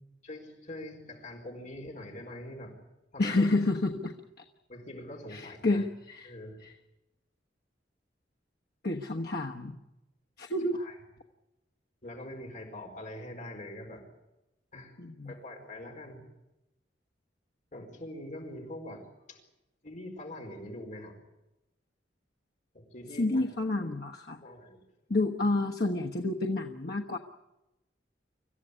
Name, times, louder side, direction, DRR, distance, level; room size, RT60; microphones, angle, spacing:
voice 1, 0.2-2.8 3.1-3.5 4.7-5.8 6.2-6.6 10.7-11.0 12.0-14.0 14.7-14.9 15.2-16.2 17.7-19.0 19.3-19.4 19.8-21.2 22.7-23.4 23.8-23.9 24.4-24.8, left 1 dB, 45° left, 2 dB, 4.6 m, -43 dB
voice 2, 3.2-4.1 5.3-6.3 6.6-6.7 8.8-9.8 10.4-10.8 15.0-15.3 23.2-24.4 25.1-27.2, left 2 dB, 60° left, 2 dB, 1.3 m, -29 dB
26.0 x 15.5 x 9.8 m, 0.99 s
head